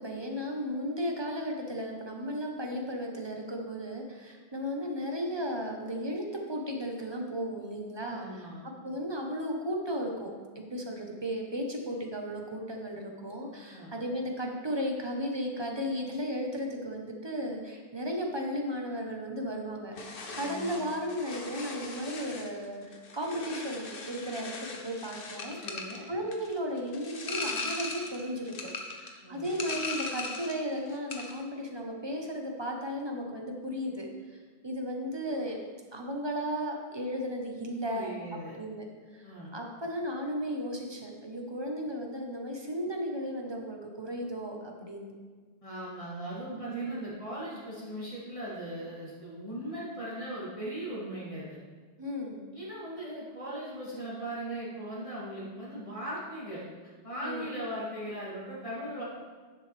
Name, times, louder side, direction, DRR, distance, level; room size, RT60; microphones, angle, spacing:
voice 1, 0.0-8.5 8.8-24.5 24.8-35.6 35.9-38.2 38.6-38.9 39.1-45.1 46.5-47.0 52.0-52.4 57.2-57.4, equal, 25° right, 1 dB, 1.1 m, -35 dB
voice 2, 8.1-8.6 13.7-14.0 20.3-20.9 25.6-26.1 29.2-29.5 37.9-38.6 39.2-39.5 45.6-51.6 52.5-56.6 57.0-59.0, right 1 dB, 30° left, -8 dB, 3.0 m, -39 dB
sound 1, 19.9-30.7 30.9-31.4, left 3 dB, 55° left, 1.1 m, -39 dB
10.0 x 7.3 x 3.4 m, 1.5 s
omnidirectional pair, 1.1 m